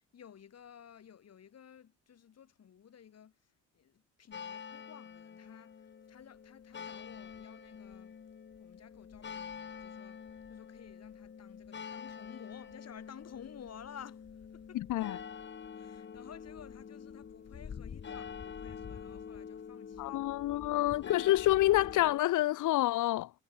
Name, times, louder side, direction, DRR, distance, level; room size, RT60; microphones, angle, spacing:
voice 1, 0.0-8.2 8.6-14.8 15.7-21.1, left 8 dB, 55° left, 6.9 m, -54 dB
sound 1, 4.3-22.2, left 7 dB, 35° left, 1.4 m, -46 dB
voice 2, 14.7-15.2 20.0-23.3, left 15 dB, 80° left, 1.3 m, -28 dB
cardioid pair, 90°, 30 cm